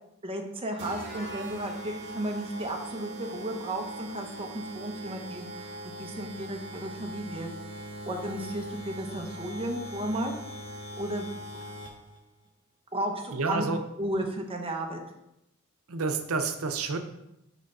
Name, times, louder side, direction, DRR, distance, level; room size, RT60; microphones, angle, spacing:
voice 1, 0.2-5.7 6.0-7.5 8.0-10.4 11.0-11.6 12.9-13.6 14.0-15.0, right 1 dB, 25° right, 3 dB, 0.9 m, -34 dB
sound 1, 0.8-12.2, right 1 dB, 55° right, 1.4 m, -41 dB
voice 2, 13.3-13.8 15.9-17.0, right 4 dB, 85° right, 8 dB, 0.8 m, -29 dB
6.1 x 4.4 x 5.4 m, 0.85 s
head